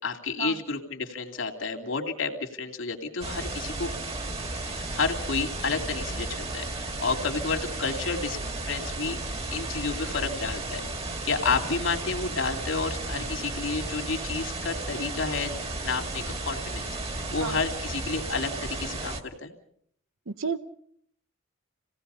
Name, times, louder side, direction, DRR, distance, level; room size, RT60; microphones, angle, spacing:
voice 1, 0.0-3.9 4.5-10.9 11.2-15.5 15.8-16.9 17.3-19.5, left 4 dB, 70° left, 3 dB, 2.8 m, -31 dB
sound 1, 3.2-19.2, right 2 dB, 30° right, 1.9 m, -34 dB
voice 2, 20.3-20.6, right 5 dB, 80° right, 13 dB, 0.8 m, -31 dB
27.5 x 18.0 x 5.6 m, 0.66 s
head